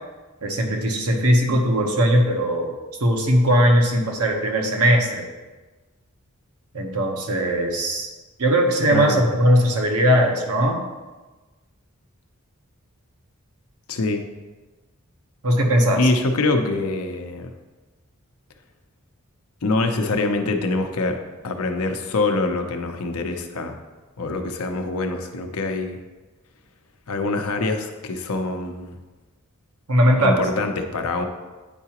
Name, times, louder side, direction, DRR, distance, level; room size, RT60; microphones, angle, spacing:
voice 1, 0.4-2.7 3.0-5.2 6.7-8.1 8.4-10.8 15.4-16.0 29.9-30.4, equal, 80° right, 2 dB, 1.0 m, -19 dB
voice 2, 8.9-9.2 13.9-14.2 16.0-17.5 19.6-21.2 21.4-23.8 24.2-26.0 27.1-29.0 30.2-31.2, left 2 dB, 75° left, 5 dB, 0.7 m, -24 dB
8.9 x 4.8 x 2.9 m, 1.2 s
head